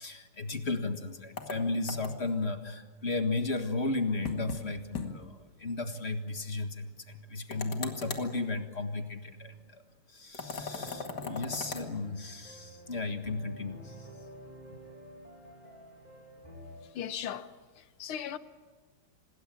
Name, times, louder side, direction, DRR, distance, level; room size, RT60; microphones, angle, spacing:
voice 1, 0.0-9.8 10.1-14.1, left 3 dB, 30° left, 1.8 m, -34 dB
sound 1, 1.4-2.4 4.2-4.6 4.9-5.1 5.4-5.5 7.5-8.3 10.3-11.9, left 4 dB, 55° left, 2.6 m, -38 dB
sound 2, 10.7-16.8, equal, 20° right, 7.2 m, -50 dB
voice 2, 16.8-18.4, left 9 dB, 85° left, 2.0 m, -39 dB
27.0 x 20.0 x 9.0 m
omnidirectional pair, 2.3 m